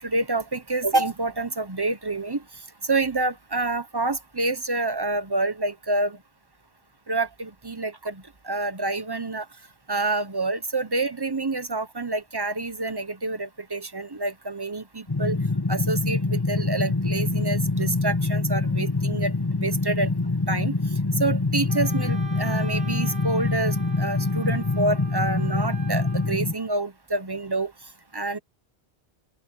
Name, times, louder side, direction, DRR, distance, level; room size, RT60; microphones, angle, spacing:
voice 1, 0.0-2.4 2.9-6.2 7.1-9.4 9.9-15.4 15.7-19.3 19.6-20.1 20.5-20.8 21.2-27.7 28.1-28.4, right 2 dB, 25° right, 0.8 m, -27 dB
sound 1, 15.1-26.5, left 3 dB, 20° left, 1.4 m, -25 dB
Wind instrument woodwind instrument, 21.7-26.3, right 4 dB, 5° right, 2.1 m, -43 dB
open air
omnidirectional pair, 1.2 m